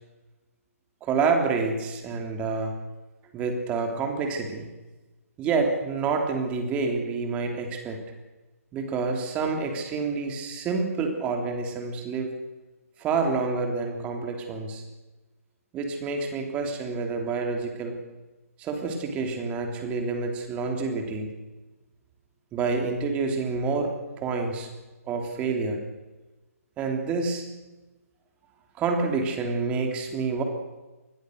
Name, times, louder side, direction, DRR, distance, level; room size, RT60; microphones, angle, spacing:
voice 1, 1.0-2.7 3.3-4.7 5.4-8.0 8.7-12.3 13.0-14.8 15.7-18.0 18.6-21.3 22.5-24.7 25.1-25.8 26.8-27.4 28.8-30.4, right 4 dB, 15° right, 4 dB, 3.2 m, -28 dB
26.5 x 21.0 x 6.6 m, 1.1 s
hypercardioid pair, 160°, 8 cm